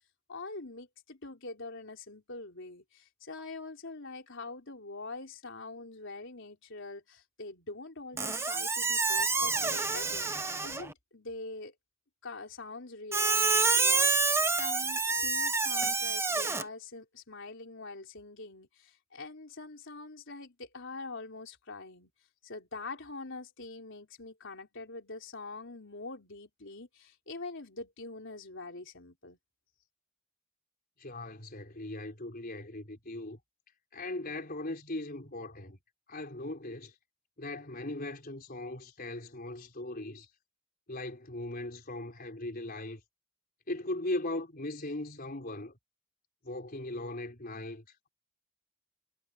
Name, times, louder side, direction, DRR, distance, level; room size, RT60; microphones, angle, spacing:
voice 1, 0.3-11.7 12.2-22.1 22.4-29.4, left 3 dB, 60° left, 4.2 m, -44 dB
Squeak, 8.2-10.9 13.1-16.6, right 4 dB, 10° right, 1.1 m, -28 dB
voice 2, 31.0-33.4 33.9-35.8 36.1-36.9 37.4-40.3 40.9-43.0 43.7-45.8 46.4-48.1, left 2 dB, 45° left, 4.3 m, -39 dB
head